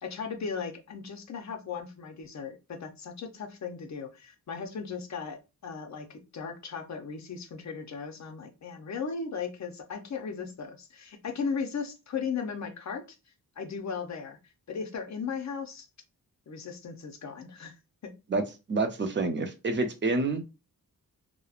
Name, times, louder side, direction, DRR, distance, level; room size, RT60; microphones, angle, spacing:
voice 1, 0.0-13.0 13.6-14.4 14.7-15.9 16.5-17.8 18.0-18.1, left 5 dB, 50° left, 5 dB, 0.6 m, -37 dB
voice 2, 18.7-20.4, right 3 dB, 30° right, 6 dB, 0.5 m, -28 dB
2.9 x 2.0 x 2.3 m, 0.28 s
wide cardioid pair, 120°, 35 cm